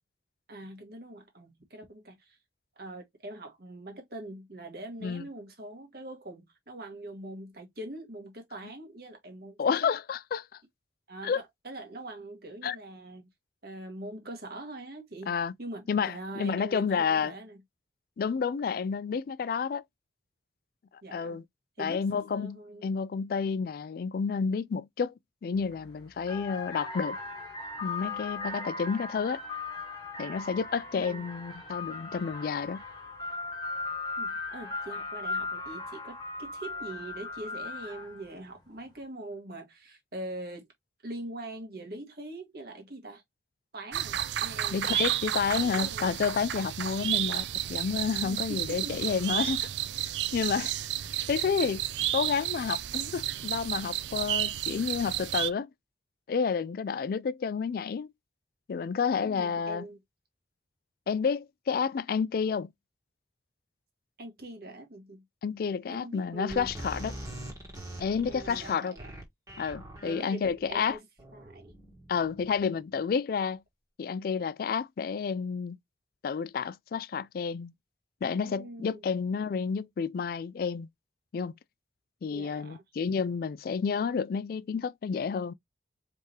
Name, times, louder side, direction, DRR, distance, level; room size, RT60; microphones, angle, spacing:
voice 1, 0.5-2.4 2.8-9.9 11.1-13.3 13.6-17.6 21.0-21.4 21.8-22.9 30.9-31.2 34.2-40.7 41.0-43.2 43.7-46.2 47.0-47.4 48.2-49.0 59.2-60.0 64.2-65.2 65.9-66.7 68.2-69.1 70.0-71.0 71.3-71.6 78.4-79.0 82.3-82.8, right 1 dB, 55° right, 1.6 m, -43 dB
voice 2, 9.6-10.5 11.2-11.4 12.6-12.8 15.3-15.5 15.9-17.3 18.2-19.8 21.1-21.4 21.8-25.1 25.4-27.2 27.8-29.4 30.2-32.8 44.7-49.7 50.3-50.7 51.3-51.9 52.1-55.7 56.3-58.1 58.7-59.8 61.1-62.7 65.4-67.1 68.0-68.9 69.6-71.0 72.1-73.6 74.0-75.8 76.2-77.7 78.2-80.9 81.3-81.5 82.2-85.5, left 6 dB, 55° left, 0.3 m, -30 dB
sound 1, 25.6-25.8 26.2-38.3, left 3 dB, 25° left, 1.5 m, -38 dB
sound 2, 43.9-55.5, right 12 dB, 75° right, 0.4 m, -32 dB
sound 3, 66.5-72.9, right 1 dB, 20° right, 1.4 m, -44 dB
4.7 x 3.4 x 2.9 m
head